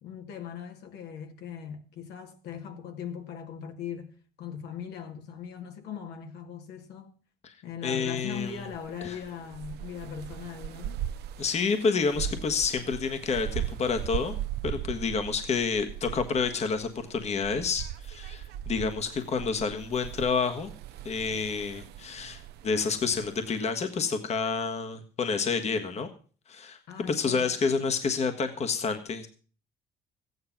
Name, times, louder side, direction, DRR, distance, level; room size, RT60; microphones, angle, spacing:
voice 1, 0.0-4.1 4.4-7.1 7.6-11.0 26.9-27.5, left 7 dB, 80° left, 2.2 m, -40 dB
voice 2, 7.8-8.6 9.0-9.2 11.4-14.4 14.6-20.7 21.0-26.1 26.5-29.3, left 5 dB, 40° left, 1.4 m, -29 dB
sound 1, 8.3-23.7, right 11 dB, 75° right, 0.7 m, -39 dB
14.5 x 9.6 x 5.9 m
cardioid pair, 110°, 17 cm